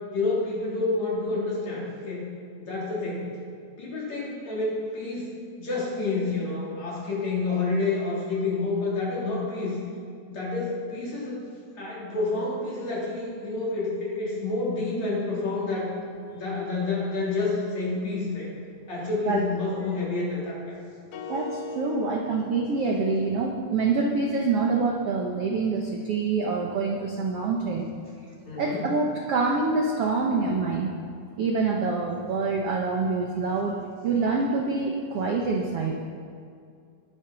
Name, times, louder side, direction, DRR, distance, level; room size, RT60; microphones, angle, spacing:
voice 1, 0.1-2.2 2.6-3.3 3.8-5.3 5.6-9.8 10.3-11.4 11.8-15.9 16.3-18.5 18.9-20.8 28.4-28.9, left 3 dB, 50° left, -6 dB, 4.7 m, -29 dB
sound 1, 21.1-23.4, left 2 dB, 80° left, 3.2 m, -39 dB
voice 2, 21.3-27.9 28.6-30.9 31.4-33.7 34.0-35.9, right 4 dB, 70° right, 0 dB, 1.4 m, -26 dB
21.5 x 7.9 x 6.2 m, 2.3 s
omnidirectional pair, 4.3 m